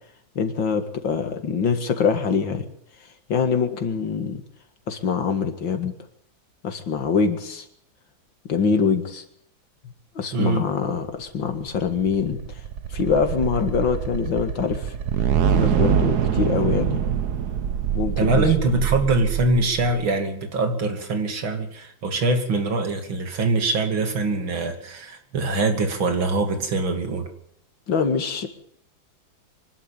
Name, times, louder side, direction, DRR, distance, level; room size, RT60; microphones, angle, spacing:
voice 1, 0.4-2.6 3.3-4.4 4.9-5.9 6.6-7.7 8.4-9.2 10.2-12.6 12.9-14.9 15.5-17.0 17.9-18.5 27.9-28.5, left 5 dB, 75° left, 7 dB, 2.8 m, -24 dB
voice 2, 10.3-10.6 18.2-27.3, right 3 dB, 90° right, 6 dB, 3.5 m, -23 dB
sound 1, 11.5-19.9, right 8 dB, 60° right, 1.5 m, -24 dB
24.5 x 12.0 x 9.2 m, 0.69 s
omnidirectional pair, 2.1 m